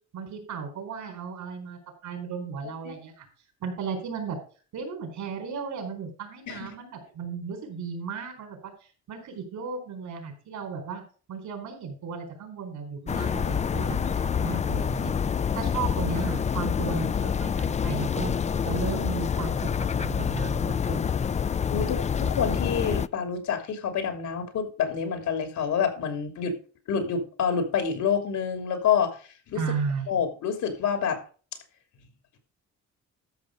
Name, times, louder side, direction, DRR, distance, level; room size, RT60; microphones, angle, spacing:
voice 1, 0.1-3.2 3.6-4.4 4.7-8.7 9.1-11.0 11.3-14.1 14.4-15.1 15.5-18.3 18.6-21.1 29.5-30.1, right 5 dB, 75° right, 5 dB, 4.4 m, -34 dB
sound 1, 13.1-23.1, left 7 dB, 25° left, 0.4 m, -27 dB
voice 2, 21.7-26.5 26.9-29.6 30.1-31.2, left 7 dB, 75° left, 7 dB, 3.0 m, -27 dB
13.0 x 6.0 x 5.0 m, 0.38 s
cardioid pair, 90°, 30 cm